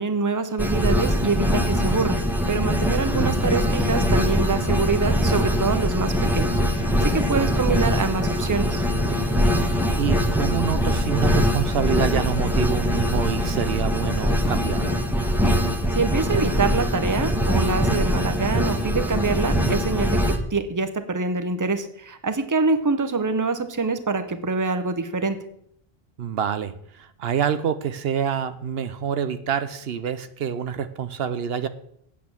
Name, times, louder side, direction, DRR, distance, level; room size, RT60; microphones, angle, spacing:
voice 1, 0.0-2.2 2.5-8.8 15.9-25.4, right 4 dB, 20° right, 9 dB, 0.8 m, -25 dB
sound 1, 0.6-20.4, equal, ahead, 1.2 m, -22 dB
voice 2, 3.1-3.5 7.3-7.5 9.6-14.9 26.2-31.7, right 8 dB, 75° right, 12 dB, 0.9 m, -27 dB
8.5 x 8.5 x 7.0 m, 0.71 s
omnidirectional pair, 1.0 m